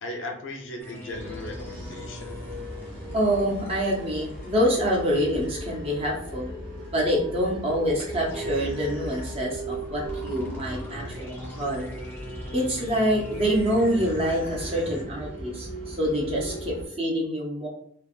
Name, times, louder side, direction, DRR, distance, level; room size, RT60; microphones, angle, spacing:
voice 1, 0.0-2.4, left 1 dB, 70° left, 3 dB, 0.6 m, -37 dB
sound 1, 0.8-5.7 8.0-15.0, equal, 10° left, 0.6 m, -42 dB
sound 2, 1.1-16.9, right 1 dB, 70° right, 1.3 m, -38 dB
voice 2, 3.1-6.5 6.9-11.9 12.5-17.7, equal, 30° right, -3 dB, 0.6 m, -26 dB
3.2 x 2.1 x 2.3 m, 0.65 s
head